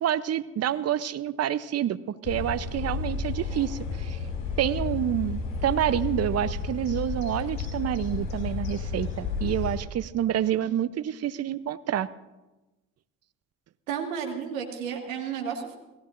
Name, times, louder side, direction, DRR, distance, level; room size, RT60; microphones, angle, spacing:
voice 1, 0.0-4.2 4.6-12.1, right 11 dB, 40° right, 15 dB, 0.8 m, -28 dB
sound 1, 2.2-9.8, left 5 dB, 65° left, 5.4 m, -32 dB
voice 2, 13.9-15.8, right 7 dB, 80° right, 3 dB, 2.0 m, -32 dB
28.0 x 17.0 x 2.6 m, 1.1 s
hypercardioid pair, 50°, 40 cm